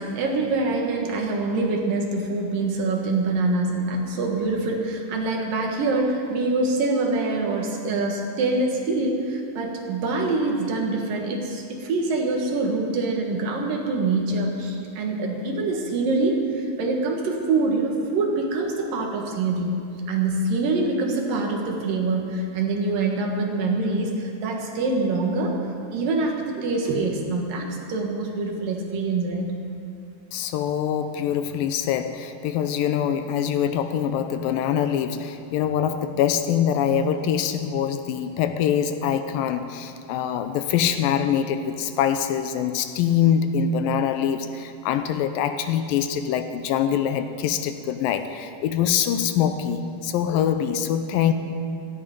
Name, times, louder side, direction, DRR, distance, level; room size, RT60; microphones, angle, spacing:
voice 1, 0.0-19.7 20.1-25.6 25.9-29.5, right 3 dB, 70° right, 1 dB, 3.2 m, -25 dB
voice 2, 30.3-51.3, left 8 dB, 80° left, 9 dB, 2.3 m, -24 dB
17.5 x 14.0 x 5.2 m, 2.6 s
omnidirectional pair, 4.2 m